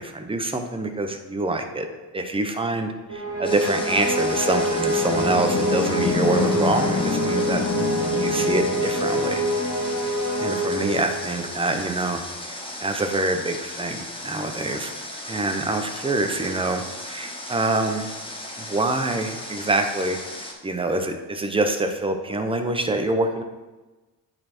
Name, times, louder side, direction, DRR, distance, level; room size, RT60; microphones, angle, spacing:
voice 1, 0.0-1.9 2.1-7.6 8.2-9.4 10.4-12.2 12.5-14.9 15.3-18.1 18.6-23.4, right 2 dB, 15° right, 6 dB, 0.8 m, -26 dB
sound 1, 3.1-11.5, left 1 dB, 40° left, 2.1 m, -24 dB
Water, 3.4-20.5, left 1 dB, 15° left, 1.5 m, -36 dB
9.3 x 4.4 x 4.4 m, 1.2 s
cardioid pair, 100°, 37 cm